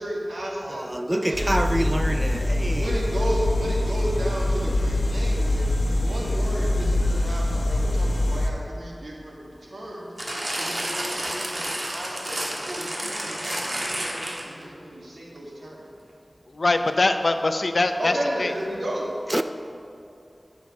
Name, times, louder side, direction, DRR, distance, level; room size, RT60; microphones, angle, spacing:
voice 1, 0.0-1.5 2.8-10.1 10.6-15.9 18.0-19.1, right 1 dB, 90° right, 1.8 m, -33 dB
voice 2, 0.6-3.0 4.7-4.8 19.3-19.4, right 1 dB, 20° right, 0.4 m, -27 dB
sound 1, 1.3-8.5, left 1 dB, 90° left, 0.9 m, -24 dB
sound 2, 10.2-14.6 15.4-15.5, right 1 dB, 55° right, 1.7 m, -30 dB
voice 3, 16.5-18.1 18.4-18.5, left 2 dB, 70° left, 0.5 m, -22 dB
10.5 x 6.0 x 5.3 m
wide cardioid pair, 50°, 0 cm